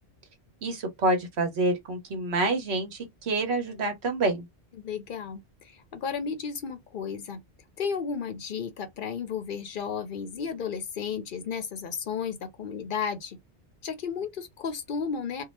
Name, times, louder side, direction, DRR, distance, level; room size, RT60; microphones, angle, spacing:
voice 1, 0.6-4.5, right 2 dB, 65° right, 1.2 m, -27 dB
voice 2, 4.8-7.4 7.8-13.4 13.8-15.4, left 6 dB, 60° left, 0.6 m, -33 dB
2.7 x 2.2 x 3.1 m
omnidirectional pair, 1.2 m